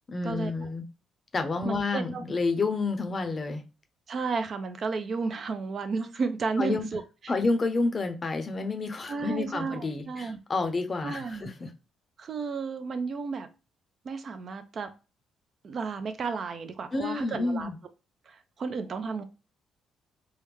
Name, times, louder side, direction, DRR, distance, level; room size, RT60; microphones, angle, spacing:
voice 1, 0.1-0.8 1.3-3.6 6.6-6.9 7.3-11.7 16.9-17.8, left 3 dB, 35° left, 0.6 m, -29 dB
voice 2, 1.6-2.2 4.1-7.3 9.1-10.4 11.0-11.5 12.2-13.5 14.0-14.9 15.6-17.7 18.3-19.2, right 4 dB, 50° right, 0.4 m, -33 dB
3.4 x 2.1 x 3.1 m
cardioid pair, 90°, 0 cm